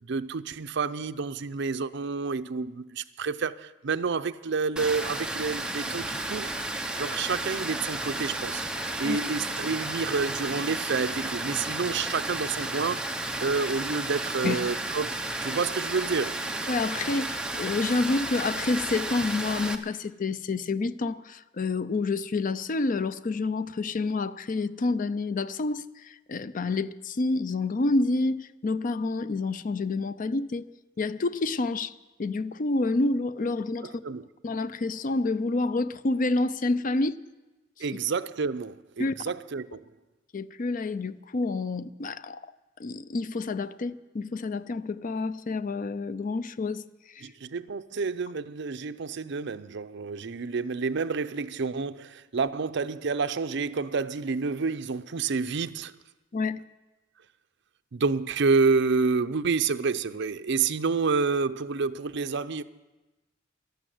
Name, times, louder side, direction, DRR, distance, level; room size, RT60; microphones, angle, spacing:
voice 1, 0.0-6.5 7.0-8.6 9.0-13.1 13.4-16.3 33.8-34.2 37.8-39.9 47.2-55.9 57.9-62.6, right 4 dB, 65° right, 0.6 m, -29 dB
Water, 4.8-19.7, right 2 dB, 5° right, 0.8 m, -33 dB
voice 2, 16.7-30.7 31.0-33.9 34.4-37.2 39.0-39.1 40.3-42.4 42.8-46.8 47.1-47.3 56.3-56.6, left 3 dB, 45° left, 0.5 m, -28 dB
12.5 x 12.5 x 7.8 m
head